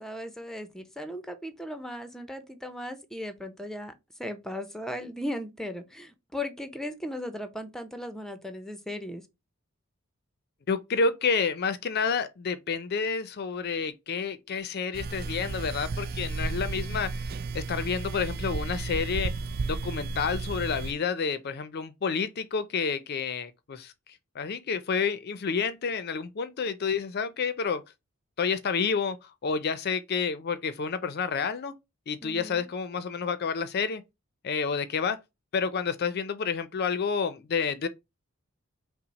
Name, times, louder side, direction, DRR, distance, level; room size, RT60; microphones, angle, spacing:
voice 1, 0.0-3.9 4.2-9.2 32.2-32.7, left 1 dB, ahead, 0.6 m, -37 dB
voice 2, 10.7-19.3 19.6-23.9 24.4-27.8 28.4-29.2 29.4-31.7 32.1-34.0 34.4-35.2 35.5-37.9, left 5 dB, 50° left, 0.4 m, -29 dB
sound 1, 14.9-20.9, right 3 dB, 45° right, 0.4 m, -33 dB
5.6 x 2.0 x 4.0 m
head